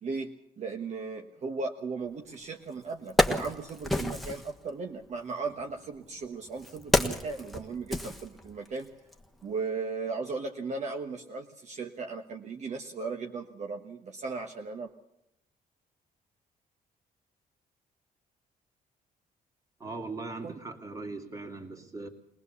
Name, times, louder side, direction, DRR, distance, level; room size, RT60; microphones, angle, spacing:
voice 1, 0.0-8.9 9.4-14.9 20.4-20.6, right 4 dB, 50° right, 3 dB, 1.3 m, -36 dB
Wood, 2.3-2.4 2.9-4.5 5.5-8.8 9.1-9.3, left 1 dB, ahead, 1.4 m, -29 dB
voice 2, 19.8-22.1, right 3 dB, 20° right, 4 dB, 2.6 m, -39 dB
21.5 x 19.0 x 7.0 m, 0.82 s
cardioid pair, 120°, 16 cm